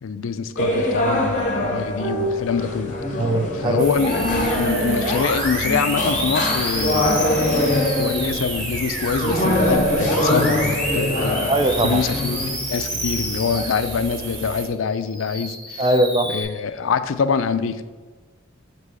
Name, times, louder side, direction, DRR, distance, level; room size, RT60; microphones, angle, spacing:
voice 1, 0.0-3.2 3.5-11.5 11.8-15.9 16.2-17.8, left 5 dB, 80° left, 12 dB, 0.4 m, -25 dB
sound 1, 0.6-12.5, left 1 dB, 35° left, 0.9 m, -24 dB
voice 2, 3.2-3.8 11.5-12.0 15.8-16.3, right 1 dB, 25° right, 7 dB, 0.3 m, -20 dB
sound 2, 3.8-14.7, right 3 dB, 70° right, 0.9 m, -32 dB
Musical instrument, 4.0-14.4 14.9-16.4, equal, 5° left, 1.5 m, -29 dB
6.3 x 3.0 x 5.3 m, 1.3 s
head